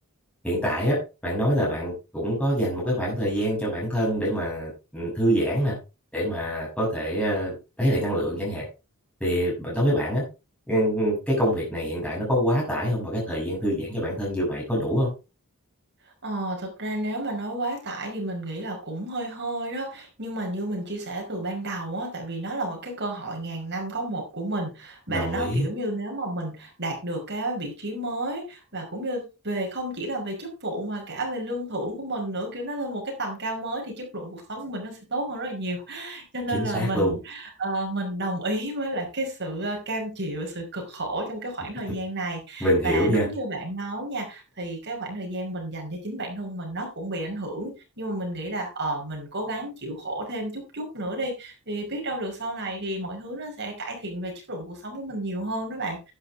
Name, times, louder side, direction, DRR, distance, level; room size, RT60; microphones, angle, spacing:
voice 1, 0.4-1.0 1.2-5.8 6.1-8.6 9.2-10.2 10.7-15.1 25.1-25.7 36.5-37.1 42.6-43.2, equal, 5° left, -5 dB, 6.7 m, -25 dB
voice 2, 16.2-56.1, right 1 dB, 50° right, 2 dB, 5.5 m, -31 dB
11.5 x 10.0 x 3.5 m, 0.28 s
head